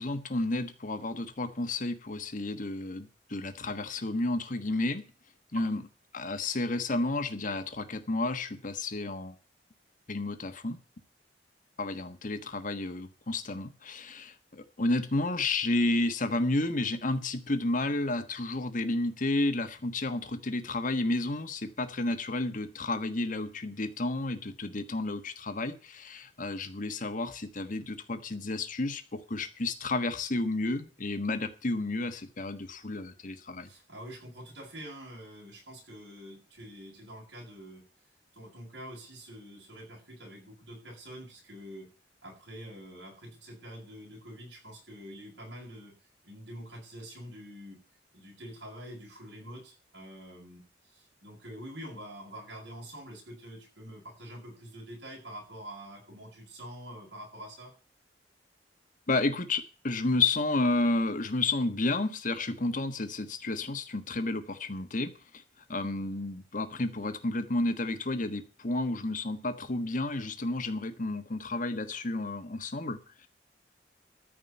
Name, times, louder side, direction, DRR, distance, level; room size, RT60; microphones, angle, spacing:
voice 1, 0.0-5.0 5.5-5.8 6.1-9.3 10.1-10.8 11.8-33.7 59.1-65.1 65.7-73.0, left 2 dB, 50° left, 1.4 m, -31 dB
voice 2, 33.6-37.8 38.3-41.9 42.2-45.9 46.2-47.8 48.1-57.7, equal, 75° right, 7.8 m, -46 dB
14.0 x 5.1 x 9.2 m
head